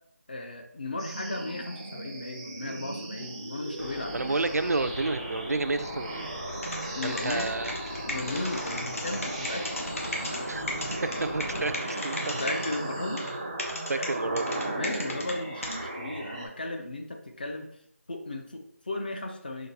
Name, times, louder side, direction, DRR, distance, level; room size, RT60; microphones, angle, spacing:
voice 1, 0.3-4.1 7.0-7.6 8.1-9.7 10.2-10.5 11.8-12.0 12.3-13.2 13.9-14.2 14.7-17.7 18.1-19.7, left 2 dB, 35° left, 4 dB, 0.6 m, -35 dB
sound 1, 1.0-16.5, right 1 dB, 15° right, 0.5 m, -37 dB
sound 2, 3.8-11.8, left 1 dB, 80° left, 1.5 m, -40 dB
voice 2, 4.1-6.3 7.0-7.7 10.5-10.7 11.2-12.2 13.9-14.6, right 3 dB, 75° right, 11 dB, 0.4 m, -30 dB
sound 3, 6.5-10.4 10.7-12.8 13.2-13.3 13.6-15.3 15.6-15.7, left 1 dB, 60° left, 1.1 m, -35 dB
5.8 x 3.1 x 2.9 m, 0.72 s
figure-of-eight pair, 170°, 9 cm